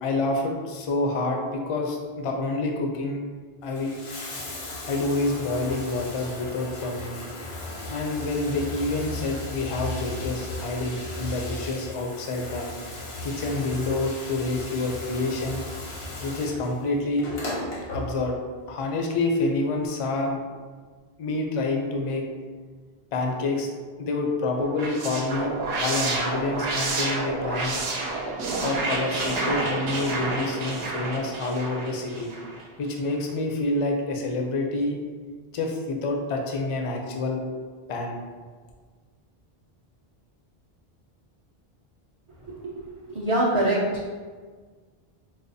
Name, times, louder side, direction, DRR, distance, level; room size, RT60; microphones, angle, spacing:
voice 1, 0.0-3.2 3.6-3.9 4.9-7.2 7.9-12.7 13.2-15.6 16.2-17.3 17.9-18.4 18.7-20.4 21.2-22.2 23.1-23.7 24.0-27.8 28.6-32.3 32.8-35.0 35.5-37.4 37.9-38.2, left 2 dB, 50° left, 2 dB, 0.4 m, -28 dB
Bathtub (filling or washing), 3.6-18.5 19.6-19.7, left 2 dB, 85° left, 1.0 m, -36 dB
sound 1, 24.6-32.6, right 2 dB, 75° right, 0.8 m, -29 dB
voice 2, 42.5-43.8, right 1 dB, 45° right, -6 dB, 0.4 m, -25 dB
4.8 x 2.3 x 2.6 m, 1.5 s
omnidirectional pair, 1.0 m